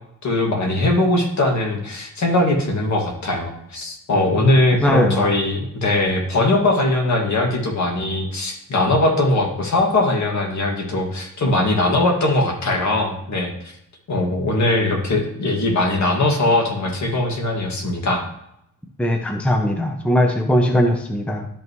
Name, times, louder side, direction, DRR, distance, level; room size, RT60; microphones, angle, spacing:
voice 1, 0.2-13.5 14.1-18.2, left 2 dB, 55° left, 1 dB, 2.0 m, -20 dB
voice 2, 4.8-5.3 19.0-21.5, equal, 5° left, 3 dB, 0.7 m, -19 dB
12.0 x 5.6 x 3.1 m, 0.78 s
wide cardioid pair, 150°, 33 cm